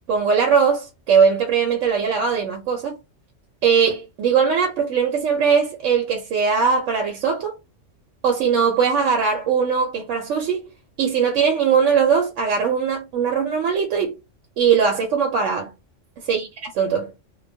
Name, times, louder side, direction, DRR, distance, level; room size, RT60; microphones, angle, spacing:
voice 1, 0.1-2.9 3.6-7.5 8.2-10.6 11.0-14.2 14.6-15.7 16.3-16.5 16.8-17.1, right 6 dB, 80° right, 0.9 m, -20 dB
2.2 x 2.2 x 2.6 m
omnidirectional pair, 1.3 m